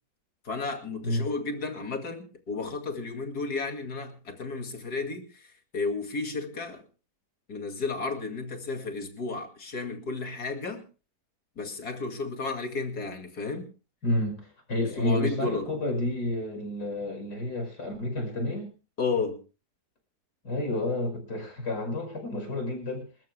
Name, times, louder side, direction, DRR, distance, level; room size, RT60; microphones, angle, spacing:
voice 1, 0.4-6.8 7.5-10.8 11.6-13.7 14.8-15.7 19.0-19.4, left 4 dB, 70° left, 5 dB, 2.8 m, -33 dB
voice 2, 14.0-18.7 20.4-23.1, left 1 dB, 90° left, 3 dB, 6.2 m, -30 dB
27.5 x 13.5 x 2.2 m, 0.33 s
omnidirectional pair, 1.7 m